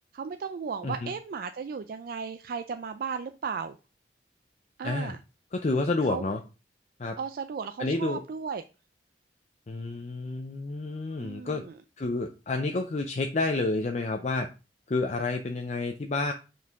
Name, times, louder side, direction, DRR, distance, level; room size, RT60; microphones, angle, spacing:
voice 1, 0.1-3.8 4.8-5.2 6.1-6.3 7.2-8.6 11.2-11.7, right 5 dB, 55° right, 9 dB, 0.3 m, -35 dB
voice 2, 4.8-5.1 5.5-6.4 7.0-7.2 7.8-8.2 9.7-11.6 12.0-14.5 14.9-16.3, left 2 dB, 40° left, 5 dB, 0.5 m, -29 dB
5.9 x 4.7 x 3.5 m, 0.31 s
head